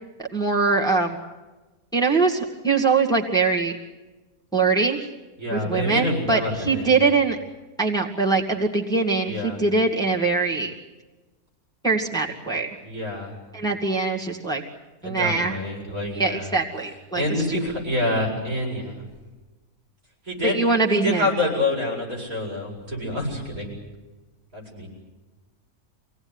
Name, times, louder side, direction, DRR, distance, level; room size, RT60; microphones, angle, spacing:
voice 1, 0.2-1.2 1.9-3.8 4.5-5.1 5.5-7.4 7.8-10.7 11.8-12.7 13.5-14.6 15.0-15.5 16.1-17.2 17.5-17.6 20.4-21.3, right 4 dB, 5° left, 0 dB, 2.2 m, -22 dB
voice 2, 5.4-6.9 9.3-9.6 12.8-13.3 15.0-16.5 17.1-19.0 20.3-20.6 20.9-23.7 24.5-24.9, left 1 dB, 80° right, -1 dB, 8.3 m, -27 dB
26.0 x 18.0 x 9.8 m, 1.2 s
omnidirectional pair, 1.5 m